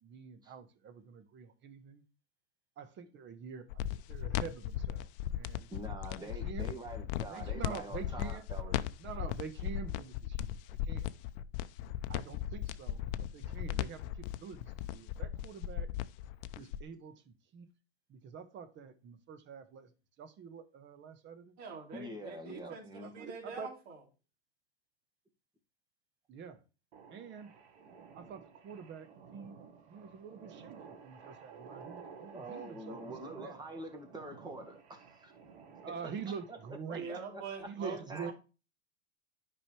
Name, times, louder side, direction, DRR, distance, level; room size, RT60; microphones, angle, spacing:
voice 1, 0.0-2.0 2.8-5.7 6.2-6.7 7.3-8.4 9.0-10.5 10.8-11.1 12.1-15.9 16.6-17.7 18.1-19.9 20.2-21.6 22.6-23.7 26.3-26.6 27.1-27.5 28.1-29.6 29.9-33.6 35.8-37.1 37.7-38.3, right 6 dB, 35° right, 1.3 m, -46 dB
sound 1, 3.7-16.8, left 11 dB, 55° left, 0.6 m, -37 dB
voice 2, 5.7-8.8 21.9-23.1 32.3-35.3 36.0-36.1 36.5-36.6 36.9-38.3, right 1 dB, 10° right, 1.9 m, -45 dB
voice 3, 21.6-24.0 36.9-38.0 38.2-38.3, right 5 dB, 50° right, 3.3 m, -45 dB
sound 2, 26.9-36.8, right 6 dB, 70° right, 1.8 m, -54 dB
10.0 x 5.4 x 3.3 m
hypercardioid pair, 110°, 34 cm